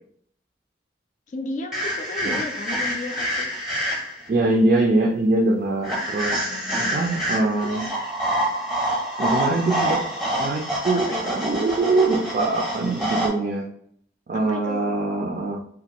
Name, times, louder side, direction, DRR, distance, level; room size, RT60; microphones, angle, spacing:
voice 1, 1.3-3.5 6.5-7.1 9.7-10.0 11.1-11.5 14.3-14.9, left 2 dB, 45° left, 4 dB, 0.3 m, -34 dB
sound 1, 1.7-4.3 5.8-13.3, equal, ahead, 0.7 m, -27 dB
voice 2, 4.3-6.4 6.8-7.9 9.2-10.0 10.4-13.7 14.3-15.6, right 2 dB, 50° right, 0 dB, 0.3 m, -23 dB
2.5 x 2.2 x 2.8 m, 0.65 s
head